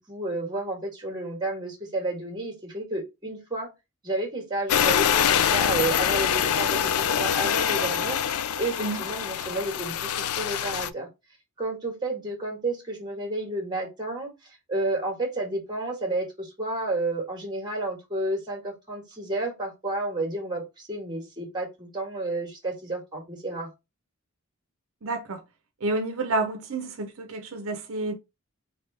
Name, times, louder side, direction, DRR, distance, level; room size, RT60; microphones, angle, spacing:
voice 1, 0.0-3.7 4.0-11.1 11.6-23.7, right 2 dB, 20° right, 1.7 m, -31 dB
sound 1, 4.7-10.9, left 9 dB, 90° left, 0.4 m, -25 dB
voice 2, 25.0-25.4 25.8-28.1, right 3 dB, 70° right, 0.7 m, -29 dB
3.6 x 3.4 x 3.3 m
head